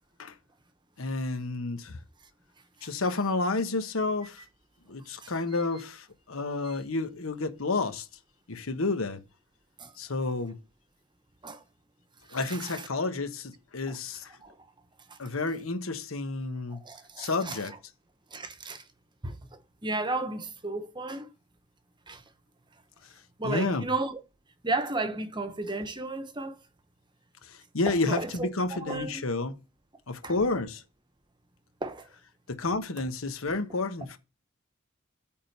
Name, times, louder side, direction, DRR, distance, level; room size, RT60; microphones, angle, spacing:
voice 1, 1.0-2.0 2.8-4.4 4.9-8.1 8.5-9.2 10.0-10.6 12.3-14.3 15.2-16.8 17.2-17.7 23.4-23.9 27.7-29.6 30.1-30.8 32.5-34.2, left 3 dB, 80° left, 1.2 m, -30 dB
voice 2, 5.2-5.6 6.6-6.8 9.8-9.9 11.4-11.6 12.3-12.9 13.9-14.0 14.4-14.6 15.1-15.2 16.7-17.8 18.3-18.8 19.2-21.3 22.1-22.2 23.4-24.2 24.6-26.6 27.9-29.2 30.2-30.3 31.8-32.1, right 2 dB, 20° right, 1.0 m, -34 dB
8.8 x 3.7 x 6.5 m
head